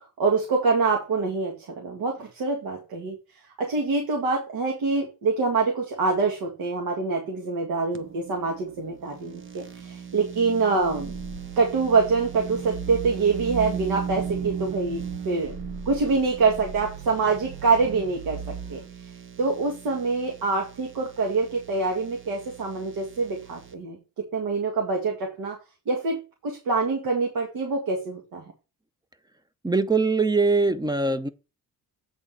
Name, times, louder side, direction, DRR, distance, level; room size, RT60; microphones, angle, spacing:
voice 1, 0.2-3.2 3.6-11.1 11.6-15.6 15.9-18.8 19.4-25.6 25.9-28.5, right 4 dB, 75° right, 1.9 m, -25 dB
sound 1, 7.9-23.7, right 7 dB, 35° right, 1.0 m, -38 dB
sound 2, 10.8-18.9, right 6 dB, 90° right, 1.3 m, -40 dB
voice 2, 29.6-31.3, right 3 dB, 10° right, 0.6 m, -22 dB
8.4 x 3.7 x 6.6 m
cardioid pair, 100°, 35 cm